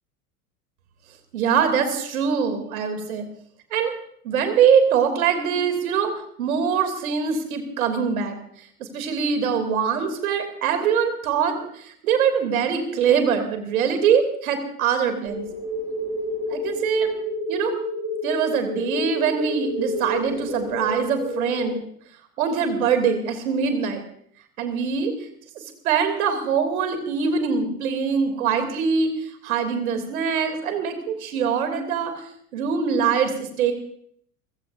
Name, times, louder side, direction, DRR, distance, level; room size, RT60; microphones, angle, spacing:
voice 1, 1.3-3.2 3.7-3.9 4.2-6.1 6.4-8.4 8.8-15.4 16.5-17.2 17.5-17.7 18.2-21.8 22.4-24.0 24.6-25.3 25.5-32.2 32.5-33.7, right 6 dB, 65° right, 7 dB, 3.1 m, -23 dB
sound 1, 15.3-21.7, equal, 20° right, 7.4 m, -29 dB
30.0 x 15.5 x 2.6 m, 0.65 s
figure-of-eight pair, 75°, 45 cm